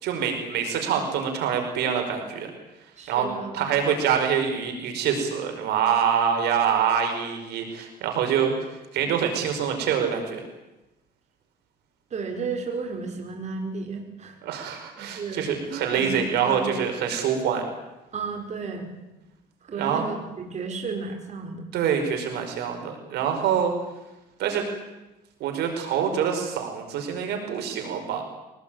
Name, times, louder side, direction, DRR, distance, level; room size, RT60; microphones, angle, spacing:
voice 1, 0.0-2.5 3.1-3.3 3.5-8.5 8.9-10.4 14.4-17.6 19.7-20.1 21.7-23.7 24.4-24.6 25.4-28.2, right 7 dB, 80° right, 4 dB, 5.0 m, -25 dB
voice 2, 3.0-3.8 9.1-9.2 12.1-14.7 15.0-16.8 18.1-18.9 19.6-20.2 20.5-21.7, right 4 dB, 45° right, 2 dB, 5.1 m, -33 dB
23.0 x 19.5 x 9.1 m, 0.98 s
cardioid pair, 110°, 17 cm